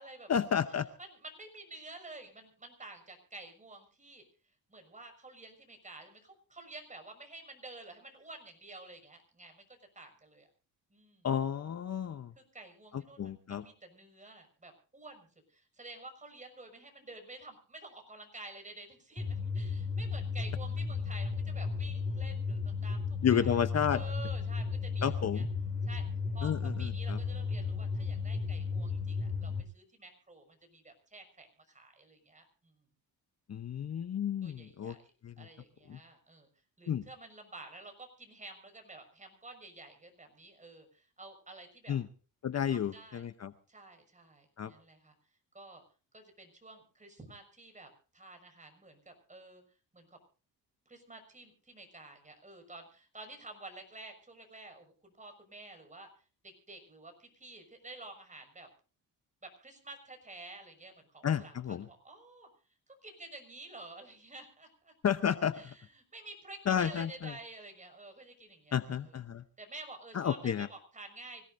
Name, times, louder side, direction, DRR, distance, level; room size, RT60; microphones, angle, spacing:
voice 1, 0.3-0.9 11.2-12.3 12.9-13.6 23.2-24.0 25.0-25.5 26.4-27.2 33.5-34.9 35.2-35.5 35.9-36.0 36.9-37.1 41.9-42.1 42.4-43.5 44.6-44.7 61.2-61.9 65.0-65.7 66.7-67.3 68.7-69.4 70.1-70.7, left 8 dB, 40° left, 11 dB, 0.9 m, -31 dB
voice 2, 1.0-4.2 4.7-9.6 9.9-10.5 10.9-11.3 12.4-23.5 23.9-25.4 25.8-26.0 26.3-26.5 26.8-32.7 34.4-35.0 35.4-36.5 36.8-42.0 42.6-43.3 43.7-45.1 45.5-45.8 46.1-49.6 49.9-50.1 50.9-56.1 56.4-58.7 59.4-61.5 61.9-62.5 62.9-64.9 65.5-69.2 69.6-71.5, right 2 dB, 20° right, 5 dB, 6.0 m, -50 dB
sound 1, 19.2-29.6, left 4 dB, 20° left, 3.4 m, -34 dB
25.0 x 17.5 x 2.7 m, 0.38 s
cardioid pair, 105°, 39 cm